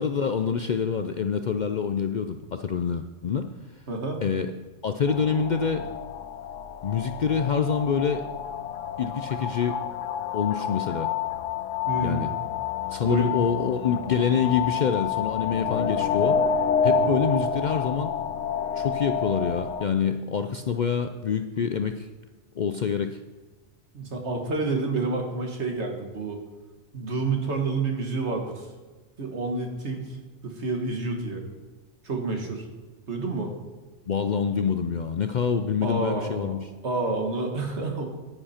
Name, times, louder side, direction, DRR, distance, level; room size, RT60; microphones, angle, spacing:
voice 1, 0.0-3.5 4.2-4.5 4.8-5.9 6.8-8.3 9.0-9.8 10.3-11.1 12.0-12.3 12.9-16.4 16.8-18.1 18.7-22.1 22.6-23.2 34.1-36.7, left 6 dB, 55° left, 8 dB, 0.5 m, -26 dB
voice 2, 3.9-4.2 11.9-12.3 13.0-13.3 16.8-17.0 23.9-26.4 26.9-28.7 29.2-30.2 30.4-31.4 32.0-32.6 33.1-33.5 35.8-36.6 36.8-38.1, right 3 dB, 65° right, 3 dB, 1.9 m, -29 dB
sound 1, 5.1-19.9, left 7 dB, 80° left, 1.0 m, -29 dB
9.9 x 9.8 x 4.4 m, 1.3 s
omnidirectional pair, 1.2 m